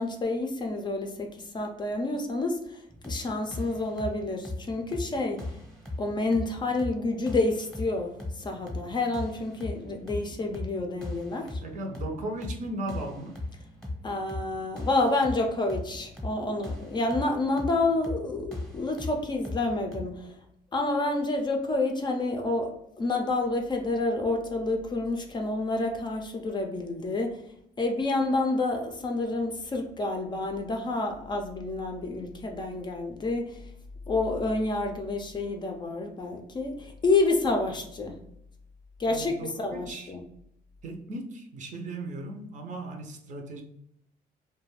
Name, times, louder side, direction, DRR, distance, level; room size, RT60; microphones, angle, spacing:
voice 1, 0.0-5.4 6.0-11.6 14.0-20.4 20.7-27.4 27.8-33.6 34.1-38.2 39.0-40.2, left 2 dB, 25° left, 3 dB, 0.4 m, -29 dB
sound 1, 2.9-20.0, left 2 dB, 5° left, 0.8 m, -39 dB
voice 2, 11.6-13.4 39.1-40.1 40.8-43.6, right 2 dB, 50° right, 3 dB, 0.5 m, -37 dB
2.4 x 2.2 x 3.1 m, 0.76 s
cardioid pair, 110°, 17 cm